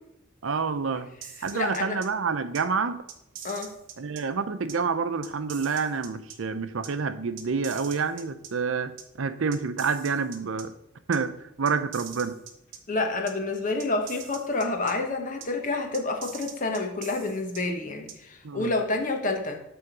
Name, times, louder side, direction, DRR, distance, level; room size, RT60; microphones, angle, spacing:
voice 1, 0.4-1.1 1.4-3.0 4.0-8.9 9.2-10.7 11.1-11.3 11.6-12.4 18.4-18.7, right 5 dB, 85° right, 11 dB, 0.6 m, -28 dB
sound 1, 1.2-2.1 2.5-2.6 3.1-4.2 4.7-4.8 5.2-6.4 6.8-6.9 7.4-8.5 9.0-9.1 9.5-10.6 11.1-11.2 11.7-12.8 13.3-13.4 13.8-14.9 15.4-15.5 15.9-17.6 18.1-18.2, right 8 dB, 65° right, 0.9 m, -42 dB
voice 2, 1.5-2.0 3.4-3.7 12.9-19.6, left 3 dB, 40° left, 4 dB, 1.1 m, -28 dB
7.8 x 3.6 x 5.9 m, 0.82 s
head